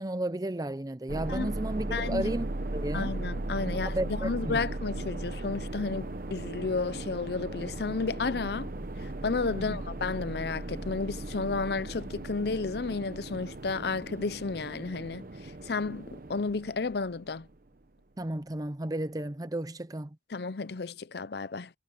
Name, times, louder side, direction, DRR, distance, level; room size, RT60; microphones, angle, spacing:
voice 1, 0.0-2.5 2.7-3.2 3.7-4.6 9.5-9.8 18.2-20.2, right 1 dB, 20° right, 0.7 m, -33 dB
sound 1, 1.1-17.5, right 2 dB, 50° right, 0.9 m, -37 dB
voice 2, 1.9-2.3 2.9-8.7 9.2-15.3 15.7-17.5 20.3-21.7, left 4 dB, 60° left, 0.6 m, -32 dB
head